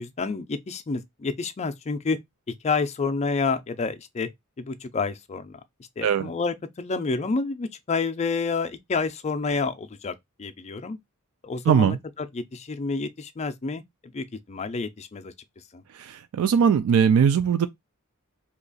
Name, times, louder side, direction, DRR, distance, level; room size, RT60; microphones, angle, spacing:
voice 1, 0.0-2.2 2.6-4.3 4.6-5.6 6.0-11.0 11.4-15.3 15.7-15.8, left 4 dB, 30° left, 0.4 m, -29 dB
voice 2, 11.7-12.0 15.9-17.7, right 7 dB, 70° right, 0.3 m, -20 dB
2.8 x 2.4 x 3.8 m
head